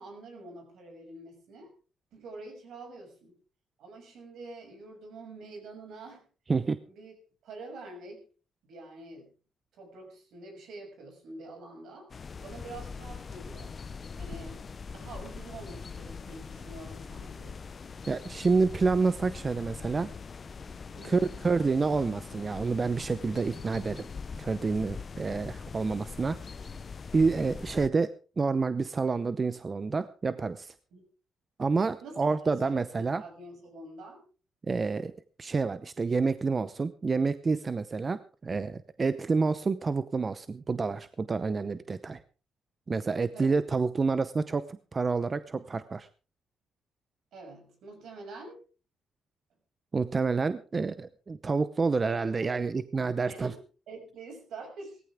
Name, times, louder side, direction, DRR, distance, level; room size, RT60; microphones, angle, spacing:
voice 1, 0.0-1.7 2.1-3.3 3.8-6.3 7.0-7.1 7.4-8.2 8.6-9.3 9.7-12.1 12.4-13.7 14.2-14.6 14.9-17.5 20.9-21.3 30.9-31.1 32.0-32.2 32.4-34.2 43.3-43.6 47.3-48.6 52.1-52.6 53.3-53.6 53.9-55.0, right 2 dB, 75° right, 3 dB, 6.4 m, -46 dB
sound 1, 12.1-27.9, left 5 dB, 40° left, 0.7 m, -42 dB
voice 2, 18.1-20.1 21.0-24.1 24.4-26.4 27.1-30.7 31.6-33.2 34.7-35.1 35.4-42.2 42.9-46.1 49.9-53.5, right 4 dB, 30° right, 14 dB, 0.7 m, -28 dB
17.5 x 14.5 x 3.6 m, 0.36 s
cardioid pair, 90°, 0 cm